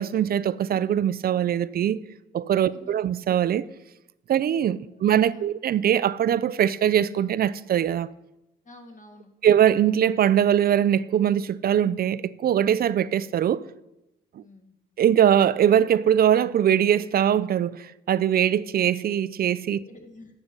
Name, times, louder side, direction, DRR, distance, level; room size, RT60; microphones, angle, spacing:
voice 1, 0.0-2.0 2.3-3.7 4.3-8.1 9.4-13.6 15.0-19.8, right 10 dB, 50° right, 0.4 m, -22 dB
voice 2, 2.7-3.0 4.8-5.0 5.3-5.5 8.6-9.3 14.4-14.8 19.8-20.4, left 1 dB, 40° left, 2.0 m, -49 dB
12.0 x 6.7 x 5.3 m
cardioid pair, 90°, 20 cm